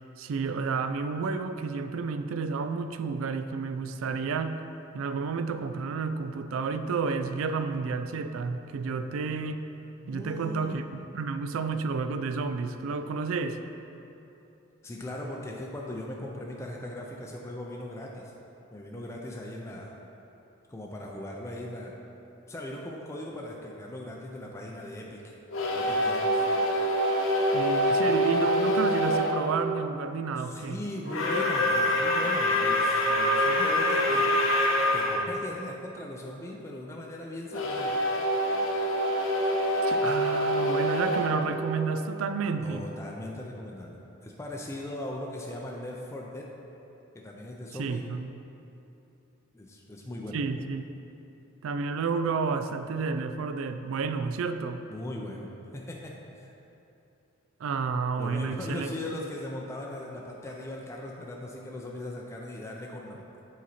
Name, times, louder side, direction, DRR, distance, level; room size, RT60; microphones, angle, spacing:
voice 1, 0.2-4.6 4.9-9.7 10.1-13.6 27.5-30.8 39.8-42.9 47.8-48.3 50.3-50.8 51.6-54.8 57.6-59.2, right 4 dB, 80° right, 9 dB, 0.3 m, -31 dB
voice 2, 10.0-11.1 14.8-18.3 18.7-19.9 20.7-21.9 22.5-25.3 25.8-26.4 30.4-34.3 34.9-37.9 42.6-46.5 47.1-48.0 49.5-50.4 54.9-56.5 58.2-63.2, left 1 dB, 15° left, -2 dB, 0.4 m, -39 dB
sound 1, 25.5-29.4 31.0-35.2 37.5-42.4, equal, 75° left, 0.9 m, -25 dB
7.5 x 4.1 x 4.2 m, 2.9 s
head